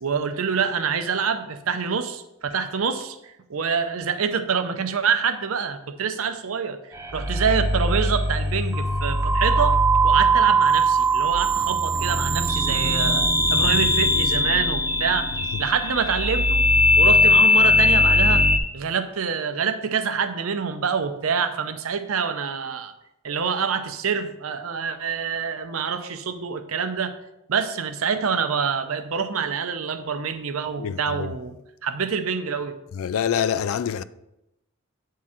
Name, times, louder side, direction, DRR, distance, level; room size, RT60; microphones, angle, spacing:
voice 1, 0.0-6.8 7.1-9.8 10.0-15.3 15.6-16.6 17.0-18.4 18.7-22.9 23.2-27.2 27.5-32.7, right 6 dB, 80° right, 0.6 m, -26 dB
sound 1, 6.9-18.6, equal, 15° right, 0.6 m, -20 dB
voice 2, 30.8-31.3 32.9-34.0, left 8 dB, 75° left, 0.3 m, -26 dB
8.4 x 3.8 x 4.3 m
head